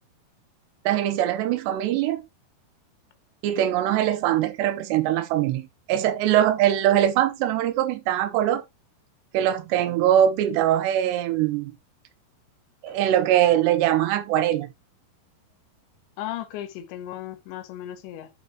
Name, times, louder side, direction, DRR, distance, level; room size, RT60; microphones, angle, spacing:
voice 1, 0.9-2.2 3.4-8.6 9.3-11.7 12.8-14.7, right 11 dB, 85° right, 2.9 m, -22 dB
voice 2, 16.2-18.3, left 12 dB, 85° left, 3.4 m, -36 dB
12.0 x 5.1 x 2.9 m
omnidirectional pair, 5.1 m